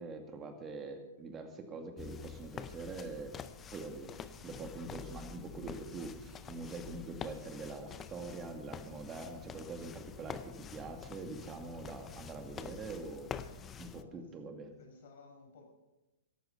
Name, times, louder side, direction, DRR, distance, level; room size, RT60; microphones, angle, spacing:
voice 1, 0.0-3.3 3.7-13.3 13.7-14.8, right 3 dB, 20° right, 6 dB, 2.1 m, -44 dB
sound 1, 2.0-14.0, left 7 dB, 20° left, 0.6 m, -47 dB
voice 2, 13.9-14.3 14.8-15.7, left 3 dB, 55° left, 2 dB, 5.4 m, -56 dB
14.0 x 11.5 x 5.6 m, 1.0 s
hypercardioid pair, 140°, 0 cm